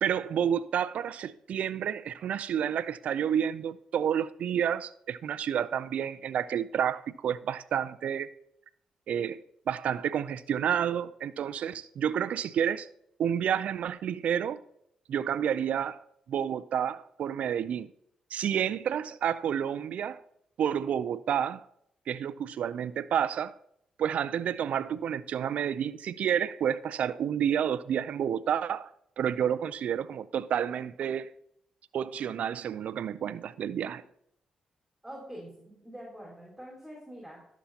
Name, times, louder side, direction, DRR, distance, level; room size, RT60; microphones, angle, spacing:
voice 1, 0.0-8.3 9.1-9.4 9.7-12.9 13.2-14.6 15.1-17.9 18.3-20.2 20.6-21.7 22.1-23.5 24.0-31.3 31.9-34.0, right 9 dB, 70° right, 0.4 m, -30 dB
voice 2, 35.0-37.5, equal, 5° right, 4.4 m, -45 dB
15.5 x 7.1 x 2.8 m
supercardioid pair, 55°, 2 cm